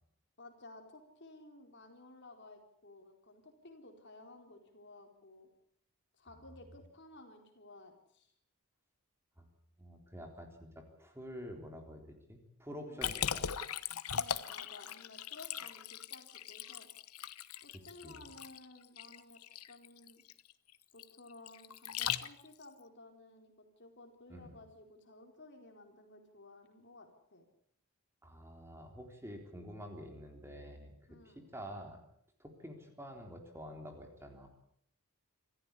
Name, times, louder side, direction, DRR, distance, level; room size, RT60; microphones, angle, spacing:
voice 1, 0.4-5.5 6.2-8.3 12.9-13.2 14.1-16.9 17.6-19.4 19.7-20.2 20.9-27.4 31.1-31.4, left 2 dB, 50° left, 4 dB, 4.3 m, -55 dB
voice 2, 9.8-13.5 18.0-18.3 24.3-24.6 28.2-32.0 32.4-34.5, equal, 10° right, 3 dB, 3.7 m, -48 dB
Liquid, 13.0-22.6, left 8 dB, 85° left, 1.1 m, -39 dB
27.0 x 14.5 x 8.5 m, 0.68 s
head